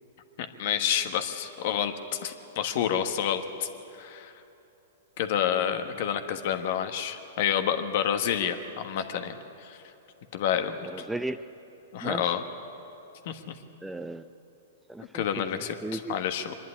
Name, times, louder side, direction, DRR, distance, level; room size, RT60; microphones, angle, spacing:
voice 1, 0.4-1.9 2.2-3.7 3.9-4.3 5.2-9.8 10.3-10.8 11.9-12.4 13.2-13.6 15.1-16.5, left 9 dB, 55° left, 8 dB, 1.3 m, -29 dB
voice 2, 10.9-11.5 12.0-12.4 13.8-14.3 14.9-15.2 15.5-16.2, right 2 dB, 5° right, 11 dB, 0.5 m, -36 dB
24.0 x 11.0 x 9.8 m, 2.9 s
hypercardioid pair, 125°, 0 cm